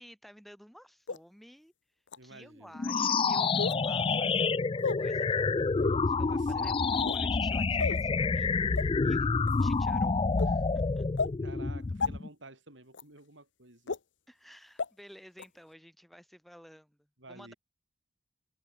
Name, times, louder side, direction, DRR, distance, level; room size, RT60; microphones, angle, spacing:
voice 1, 0.0-1.7 2.2-5.8 6.1-9.2 9.6-10.7 11.0-11.1 14.3-17.5, equal, ahead, 3.9 m, -53 dB
sound 1, 1.1-1.2 2.1-2.2 3.6-3.8 4.8-5.0 5.8-6.0 6.9-7.2 7.8-8.0 8.8-8.9 9.5-9.7 10.4-10.5 11.2-11.3 12.0-12.1 12.9-13.0 13.9-14.0 14.8-14.9 15.4-15.5, left 4 dB, 80° left, 0.8 m, -32 dB
voice 2, 2.2-2.8 6.3-6.9 8.6-9.7 11.4-13.9 17.2-17.5, right 2 dB, 80° right, 6.8 m, -52 dB
sound 2, 2.7-12.3, left 4 dB, 25° left, 0.3 m, -28 dB
head